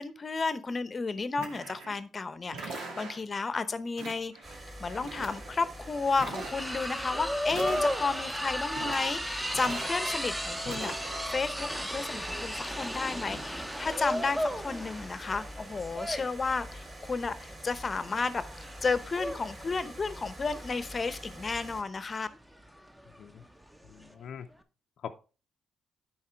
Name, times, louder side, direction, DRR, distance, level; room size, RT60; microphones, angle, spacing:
voice 1, 0.0-4.3 4.8-18.4 18.8-22.3, left 4 dB, 35° left, 14 dB, 0.8 m, -32 dB
sound 1, 1.4-2.0 2.5-3.4 4.0-4.6 4.9-5.6 6.1-6.9 7.5-8.3 8.7-9.2 9.5-10.3 10.6-11.3, right 3 dB, 80° right, 2.1 m, -42 dB
sound 2, 4.4-21.8, equal, 25° right, 3.4 m, -46 dB
sound 3, 4.9-5.0 5.3-24.1, equal, 5° right, 0.9 m, -36 dB
voice 2, 23.8-24.5 25.0-25.2, left 8 dB, 65° left, 6 dB, 0.6 m, -43 dB
9.9 x 4.1 x 4.5 m, 0.34 s
cardioid pair, 90°, 0 cm